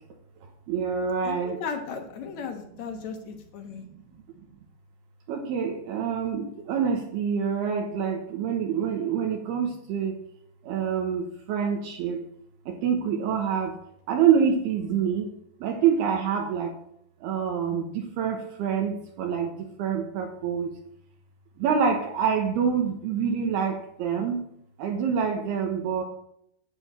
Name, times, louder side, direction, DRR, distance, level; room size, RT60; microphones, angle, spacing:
voice 1, 0.7-1.6 5.3-10.1 10.7-12.2 12.7-13.7 14.1-15.3 15.6-16.7 17.2-19.5 19.8-20.7 21.6-24.4 24.8-26.0, right 7 dB, 70° right, 1 dB, 2.9 m, -26 dB
voice 2, 1.2-3.8, left 6 dB, 70° left, 4 dB, 1.7 m, -36 dB
10.5 x 8.8 x 4.4 m, 0.72 s
omnidirectional pair, 5.1 m